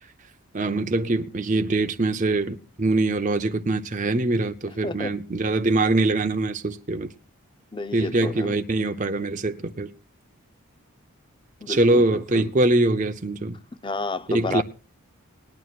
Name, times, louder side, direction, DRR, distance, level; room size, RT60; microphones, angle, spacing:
voice 1, 0.5-7.1 7.9-9.9 11.7-13.6 14.3-14.6, right 2 dB, 35° right, 0.7 m, -23 dB
voice 2, 4.7-5.1 7.7-8.6 11.6-12.5 13.8-14.6, left 2 dB, 20° left, 0.6 m, -31 dB
20.0 x 11.0 x 2.4 m
head